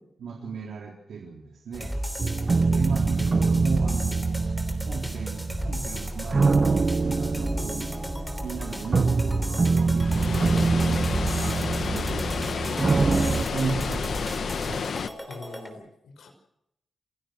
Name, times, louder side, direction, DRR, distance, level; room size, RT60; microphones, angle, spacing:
voice 1, 0.2-1.9 2.7-4.2 4.9-7.9 8.4-11.1 11.9-12.3 13.5-14.8, right 5 dB, 80° right, 0 dB, 3.7 m, -35 dB
sound 1, 1.7-15.7, equal, ahead, 3.2 m, -34 dB
sound 2, 2.2-13.4, right 4 dB, 30° right, 0.7 m, -25 dB
Water, 10.0-15.1, left 6 dB, 55° left, 1.2 m, -31 dB
voice 2, 15.3-16.3, left 3 dB, 80° left, 6 dB, 5.6 m, -43 dB
28.0 x 16.0 x 6.3 m, 0.78 s
wide cardioid pair, 175°, 0 cm